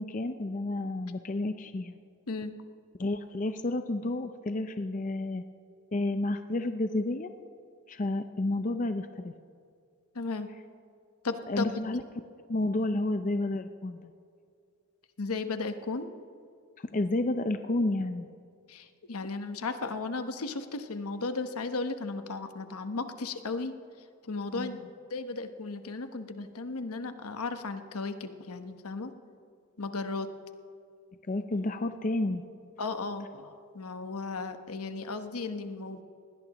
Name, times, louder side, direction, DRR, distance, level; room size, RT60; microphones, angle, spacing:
voice 1, 0.0-2.0 3.0-5.4 5.9-7.3 7.9-9.3 11.5-12.0 12.5-14.1 16.9-18.3 24.6-24.7 31.3-32.4, left 2 dB, 35° left, 9 dB, 0.5 m, -30 dB
voice 2, 10.1-10.5 11.2-11.8 15.2-16.1 18.7-23.7 24.2-29.1 29.8-30.3 32.8-36.0, left 3 dB, 85° left, 8 dB, 1.0 m, -35 dB
20.5 x 17.5 x 3.0 m, 2.3 s
head